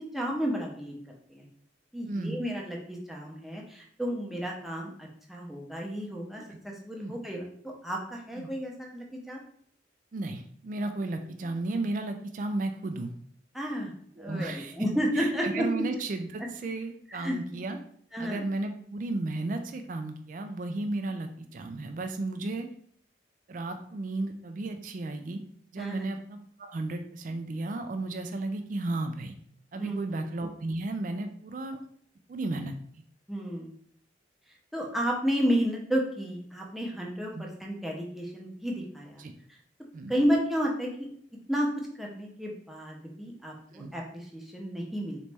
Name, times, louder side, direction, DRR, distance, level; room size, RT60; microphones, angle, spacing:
voice 1, 0.1-1.0 1.3-1.4 1.9-9.4 13.5-13.9 14.2-15.8 17.1-17.4 18.1-18.4 25.8-26.1 29.8-30.0 33.3-33.7 34.7-39.2 40.1-41.1 41.5-41.7 42.0-45.2, equal, ahead, -1 dB, 0.7 m, -32 dB
voice 2, 2.1-2.4 7.0-7.2 8.4-8.5 10.1-13.1 14.2-14.7 15.2-17.8 18.2-22.7 23.5-25.4 25.7-29.3 29.7-31.8 32.3-32.8 37.3-37.4 39.2-39.3 39.9-40.1 43.7-43.9, right 2 dB, 45° right, 7 dB, 0.3 m, -34 dB
4.1 x 3.1 x 3.4 m, 0.62 s
head